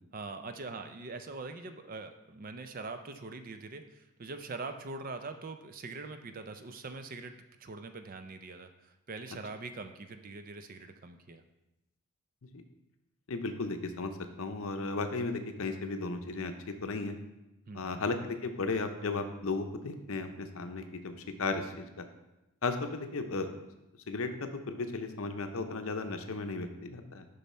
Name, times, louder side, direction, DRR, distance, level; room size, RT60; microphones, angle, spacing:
voice 1, 0.1-11.4 17.7-18.0, right 3 dB, 40° right, 8 dB, 0.4 m, -43 dB
voice 2, 13.3-14.1 14.4-16.5 16.8-17.1 17.7-21.1 21.4-22.1 22.6-23.5 24.1-27.3, left 3 dB, 70° left, 7 dB, 0.7 m, -35 dB
6.9 x 5.5 x 4.2 m, 0.95 s
head